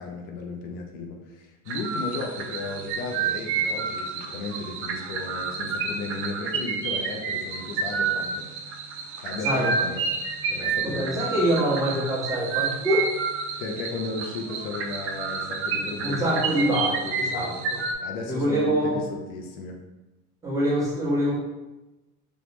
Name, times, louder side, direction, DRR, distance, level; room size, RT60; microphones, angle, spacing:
voice 1, 0.0-8.5 9.2-10.0 10.5-11.2 13.6-17.7 18.0-19.8, left 3 dB, 70° left, 2 dB, 0.7 m, -35 dB
sound 1, 1.7-17.9, right 5 dB, 35° right, 0.4 m, -30 dB
voice 2, 10.8-13.1 16.0-17.8 18.3-19.0 20.4-21.4, right 1 dB, 10° right, -8 dB, 1.2 m, -25 dB
3.5 x 2.3 x 3.0 m, 1.0 s
supercardioid pair, 120°, 38 cm